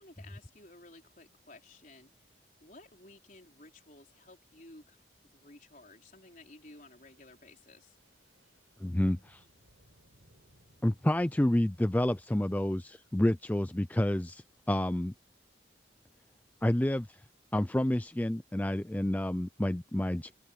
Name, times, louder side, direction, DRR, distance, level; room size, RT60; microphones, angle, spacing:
voice 1, 0.0-2.1 2.6-8.0, left 2 dB, 45° left, 4.7 m, -55 dB
Wind, 5.9-16.2, right 1 dB, 80° right, 6.4 m, -69 dB
voice 2, 8.8-9.4 10.8-15.1 16.6-17.2 17.5-20.3, left 1 dB, 10° left, 0.4 m, -29 dB
open air
head